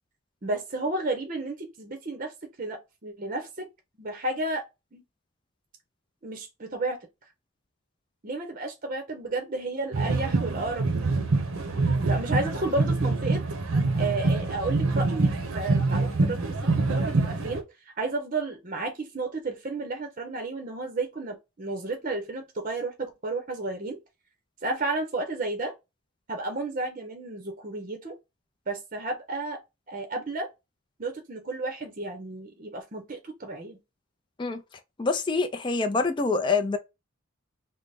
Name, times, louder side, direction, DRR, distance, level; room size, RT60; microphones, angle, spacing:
voice 1, 0.4-2.3 2.6-3.7 4.0-4.6 4.9-5.0 6.2-7.0 8.2-11.3 11.7-13.4 14.0-16.6 16.9-24.0 24.6-25.7 26.3-28.2 28.7-29.6 29.9-30.5 31.0-33.8, right 2 dB, 35° right, 0.6 m, -32 dB
sound 1, 9.9-17.6, right 3 dB, 70° right, 0.7 m, -25 dB
voice 2, 35.0-36.8, left 4 dB, 20° left, 0.3 m, -25 dB
3.3 x 2.1 x 3.9 m
head